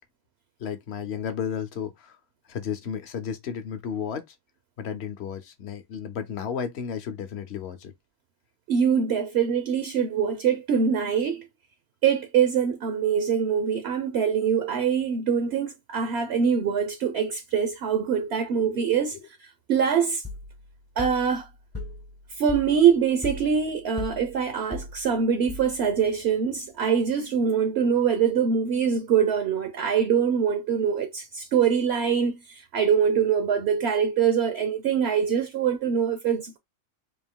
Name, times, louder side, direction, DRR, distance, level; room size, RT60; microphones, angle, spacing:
voice 1, 0.6-2.2 2.5-4.3 4.8-7.9 18.6-18.8, left 7 dB, 55° left, 1.0 m, -33 dB
voice 2, 8.7-11.5 12.0-20.2 21.0-21.5 22.4-36.6, right 7 dB, 60° right, 0.8 m, -24 dB
sound 1, 20.2-26.1, left 3 dB, 20° left, 0.4 m, -39 dB
3.8 x 2.7 x 3.6 m
omnidirectional pair, 1.4 m